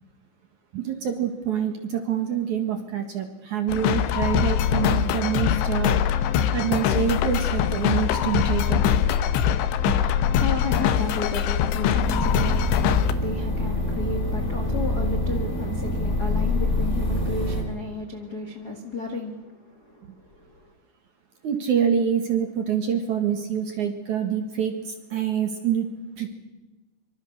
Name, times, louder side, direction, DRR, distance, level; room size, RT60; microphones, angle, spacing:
voice 1, 0.7-6.0 6.5-8.9 9.8-10.0 21.4-25.9 26.2-26.3, right 8 dB, 55° right, 6 dB, 2.3 m, -26 dB
sound 1, 3.7-13.1, left 9 dB, 75° left, 3.1 m, -23 dB
voice 2, 10.0-20.7, left 3 dB, 55° left, 4 dB, 1.1 m, -33 dB
sound 2, 12.0-17.6, left 1 dB, 10° left, 5.8 m, -25 dB
25.0 x 25.0 x 6.7 m, 1.1 s
omnidirectional pair, 5.4 m